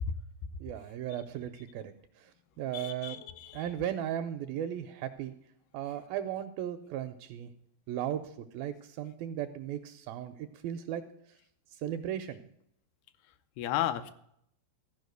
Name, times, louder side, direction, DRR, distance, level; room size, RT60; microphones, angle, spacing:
voice 1, 0.6-2.3 2.6-3.2 3.5-5.3 5.7-7.5 7.9-11.0 11.7-12.4, right 10 dB, 80° right, 9 dB, 2.2 m, -36 dB
voice 2, 2.7-3.6 13.6-14.1, left 11 dB, 80° left, 9 dB, 2.6 m, -33 dB
14.5 x 5.4 x 7.8 m, 0.72 s
omnidirectional pair, 4.6 m